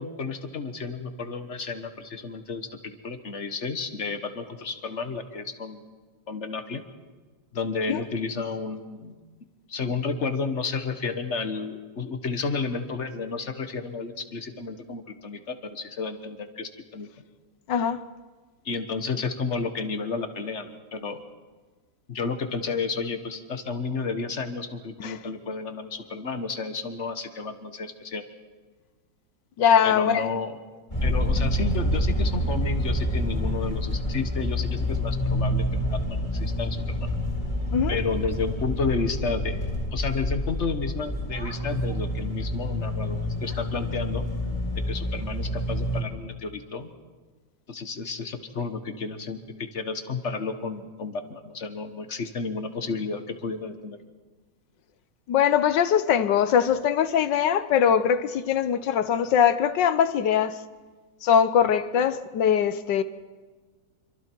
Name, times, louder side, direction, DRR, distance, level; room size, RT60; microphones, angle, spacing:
voice 1, 0.0-5.8 6.3-6.8 7.5-9.1 9.7-17.1 18.6-21.2 22.1-28.2 29.8-30.6 31.0-37.1 37.9-44.3 44.9-46.9 47.7-54.0, left 4 dB, 40° left, 1.6 m, -32 dB
voice 2, 17.7-18.0 25.0-25.2 29.6-30.3 37.7-38.0 55.3-60.6 61.2-63.0, left 8 dB, 75° left, 1.5 m, -22 dB
sound 1, 30.9-46.0, left 1 dB, 20° left, 3.7 m, -28 dB
27.0 x 24.5 x 4.6 m
omnidirectional pair, 2.0 m